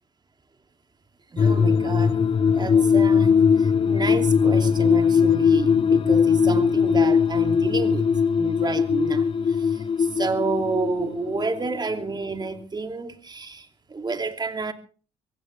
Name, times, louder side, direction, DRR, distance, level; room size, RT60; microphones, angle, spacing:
voice 1, 1.3-2.2 2.5-3.5 3.8-8.1 8.4-9.3 10.2-13.7 13.9-14.7, right 4 dB, 30° right, 2.8 m, -29 dB
sound 1, 1.4-12.2 12.4-12.5, left 6 dB, 35° left, 0.9 m, -20 dB
24.0 x 16.0 x 3.4 m
hypercardioid pair, 60°, 15 cm